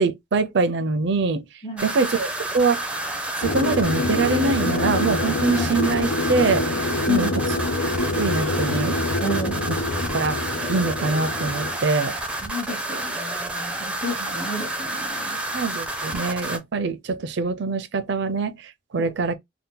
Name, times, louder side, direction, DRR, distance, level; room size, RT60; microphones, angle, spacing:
voice 1, 0.0-1.5 1.8-2.3 2.5-2.8 3.4-7.3 8.2-9.0 10.1-10.4 10.7-12.2 15.5-19.4, right 4 dB, 60° right, 0.5 m, -24 dB
voice 2, 1.6-2.0 5.6-5.8 7.1-7.4 9.2-9.6 12.1-15.4 19.0-19.3, left 1 dB, 20° left, 0.9 m, -30 dB
sound 1, 1.8-16.6, right 2 dB, 5° right, 0.5 m, -30 dB
sound 2, 3.4-11.8, left 2 dB, 90° left, 0.6 m, -26 dB
2.8 x 2.2 x 3.7 m
head